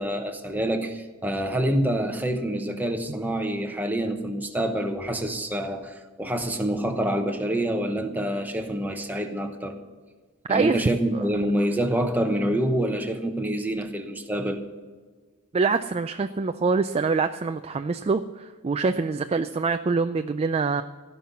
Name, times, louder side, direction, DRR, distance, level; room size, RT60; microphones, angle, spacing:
voice 1, 0.0-9.8 10.5-14.6, right 1 dB, 10° right, 1.0 m, -27 dB
voice 2, 10.5-10.8 11.1-11.2 15.5-20.8, right 4 dB, 30° right, 0.3 m, -25 dB
15.5 x 5.6 x 9.4 m
head